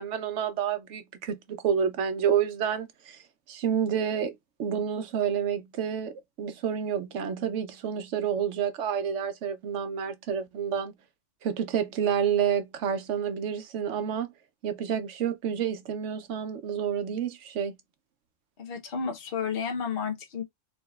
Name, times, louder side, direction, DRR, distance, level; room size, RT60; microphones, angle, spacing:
voice 1, 0.0-3.2 3.5-6.1 6.4-10.9 11.4-14.3 14.6-17.7, right 8 dB, 65° right, 1.0 m, -29 dB
voice 2, 18.6-20.4, left 6 dB, 50° left, 1.0 m, -32 dB
3.5 x 2.9 x 2.3 m
omnidirectional pair, 1.4 m